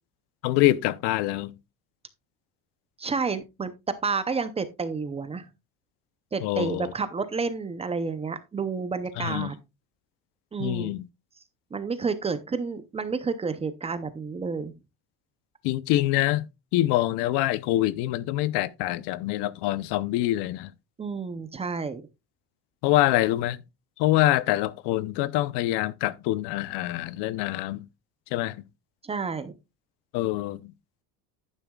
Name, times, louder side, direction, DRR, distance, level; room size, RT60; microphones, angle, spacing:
voice 1, 0.4-1.5 6.4-6.9 9.2-9.5 10.6-11.0 15.6-16.4 16.7-20.7 22.8-23.6 24.0-27.8 28.3-28.6 30.1-30.7, left 16 dB, 75° left, 0.7 m, -25 dB
voice 2, 3.0-3.7 4.0-5.5 6.3-9.6 10.5-11.0 11.7-14.7 21.0-22.0 29.0-29.5, right 4 dB, 15° right, 0.6 m, -30 dB
11.0 x 9.1 x 2.3 m
cardioid pair, 165°, 40 cm